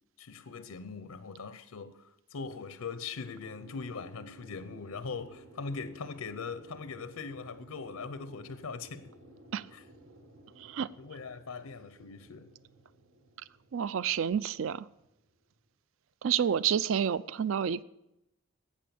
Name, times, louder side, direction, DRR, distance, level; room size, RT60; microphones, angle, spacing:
voice 1, 0.2-9.1 9.7-9.8 11.0-12.5, left 5 dB, 90° left, 0.6 m, -41 dB
sound 1, 3.4-15.7, right 1 dB, 85° right, 1.8 m, -55 dB
voice 2, 10.6-10.9 13.7-14.9 16.2-17.8, right 8 dB, 60° right, 0.4 m, -29 dB
11.5 x 8.4 x 6.9 m
head